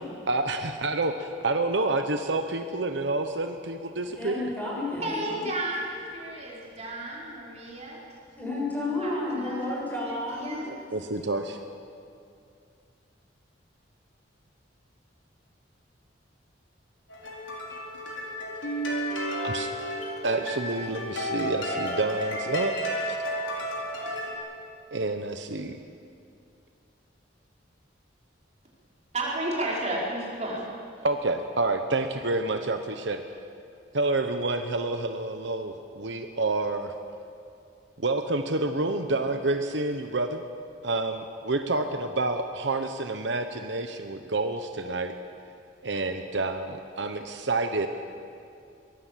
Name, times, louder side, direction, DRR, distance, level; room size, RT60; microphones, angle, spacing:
voice 1, 0.3-4.5 10.9-11.6 19.4-19.7 20.2-22.7 23.1-23.2 24.9-25.8 31.0-33.2 33.9-36.9 38.0-40.4 40.8-45.1 45.8-47.9, right 2 dB, 70° right, 6 dB, 1.1 m, -28 dB
voice 2, 4.0-5.4 8.3-10.6, left 2 dB, 10° left, -4 dB, 7.5 m, -31 dB
voice 3, 5.0-8.0 9.0-9.7 10.1-10.7 29.1-30.7, right 1 dB, 35° right, -4 dB, 4.9 m, -33 dB
sound 1, 17.1-24.3, equal, 85° left, 4.4 m, -32 dB
23.0 x 20.0 x 7.6 m, 2.5 s
head